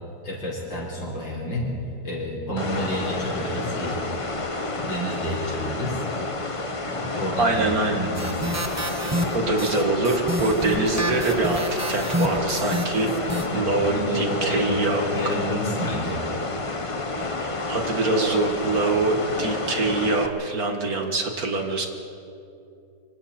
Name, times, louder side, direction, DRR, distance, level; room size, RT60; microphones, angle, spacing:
voice 1, 0.2-1.7 2.0-4.0 4.8-6.0 6.8-7.6 7.9-8.4 13.5-14.8 15.1-16.2, equal, 80° left, -4 dB, 5.6 m, -30 dB
sound 1, 2.6-20.3, left 2 dB, 25° left, 0.7 m, -30 dB
voice 2, 7.4-8.0 9.3-13.1 13.5-15.0 17.4-21.9, right 3 dB, 50° right, 3 dB, 2.2 m, -24 dB
sound 2, 8.1-13.5, equal, 10° right, 0.9 m, -29 dB
25.0 x 25.0 x 4.4 m, 2.6 s
omnidirectional pair, 2.0 m